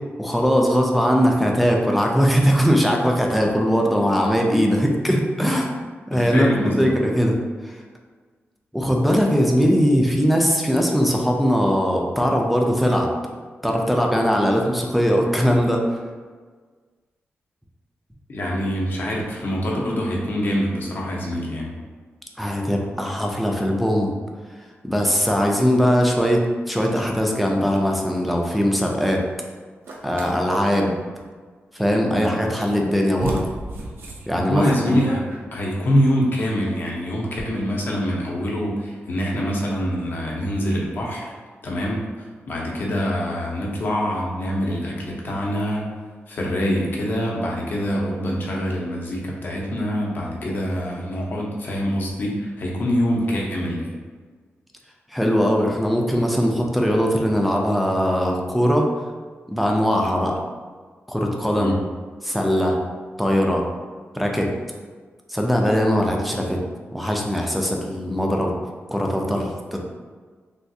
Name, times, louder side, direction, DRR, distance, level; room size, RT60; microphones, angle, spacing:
voice 1, 0.2-5.7 6.1-7.3 7.6-7.8 8.7-13.1 13.6-15.8 22.4-24.2 24.8-29.2 30.0-30.9 31.7-33.4 34.3-34.6 34.9-35.0 55.1-58.9 59.5-60.4 61.1-61.7 62.2-62.8 63.2-63.6 64.1-64.5 65.3-66.6 66.9-68.5 68.9-69.8, equal, ahead, 0 dB, 0.4 m, -20 dB
voice 2, 6.1-6.9 18.3-21.7 32.1-32.3 34.3-35.2 35.5-41.3 41.6-45.9 46.3-54.0 61.6-61.8, equal, 50° left, -2 dB, 0.6 m, -25 dB
sound 1, 29.9-30.3 32.5-32.6 33.2-35.7, right 2 dB, 60° right, 0.4 m, -31 dB
3.3 x 2.3 x 2.7 m, 1.5 s
wide cardioid pair, 150°, 4 cm